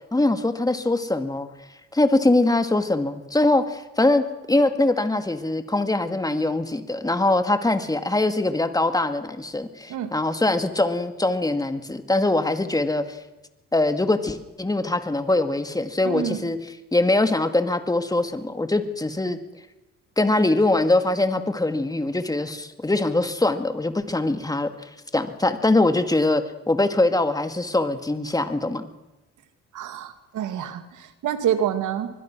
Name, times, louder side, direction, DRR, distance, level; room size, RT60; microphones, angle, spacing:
voice 1, 0.1-1.5 1.9-13.2 13.7-16.6 16.9-19.4 20.2-28.9, left 2 dB, 10° left, 9 dB, 2.2 m, -22 dB
voice 2, 16.0-16.5 29.7-32.1, right 9 dB, 80° right, 9 dB, 2.6 m, -27 dB
25.5 x 21.0 x 6.2 m, 1.0 s
cardioid pair, 90°, 30 cm